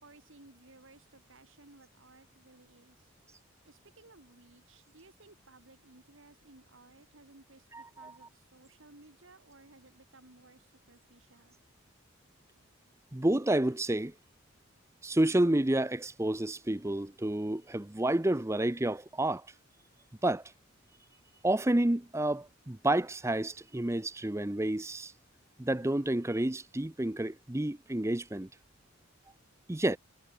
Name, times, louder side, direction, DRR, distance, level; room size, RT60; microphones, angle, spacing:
voice 1, 0.0-3.1 3.6-11.6, right 2 dB, 60° right, 1.8 m, -58 dB
voice 2, 7.7-8.2 13.1-14.1 15.0-19.4 20.2-20.4 21.4-25.1 25.6-28.5 29.7-30.0, right 1 dB, 15° right, 0.6 m, -29 dB
head